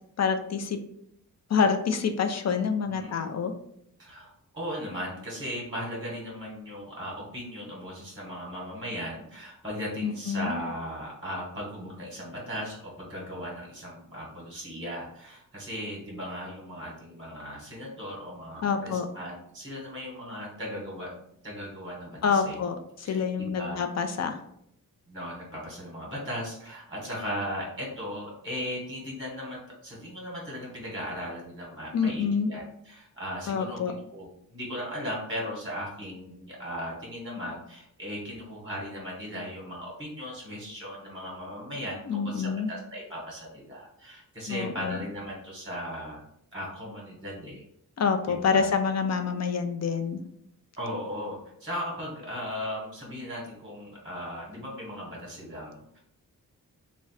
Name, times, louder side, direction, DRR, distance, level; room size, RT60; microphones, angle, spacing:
voice 1, 0.2-0.8 1.5-3.5 10.0-10.6 18.6-19.1 22.2-24.4 31.9-32.5 33.5-33.9 42.1-42.7 44.5-45.0 48.0-50.2, left 6 dB, 50° left, 6 dB, 0.4 m, -27 dB
voice 2, 2.9-3.3 4.0-22.6 23.0-23.8 25.1-46.2 46.5-47.6 48.3-48.7 50.8-56.0, equal, 15° right, -4 dB, 1.0 m, -37 dB
3.6 x 2.1 x 4.1 m, 0.71 s
wide cardioid pair, 175°, 34 cm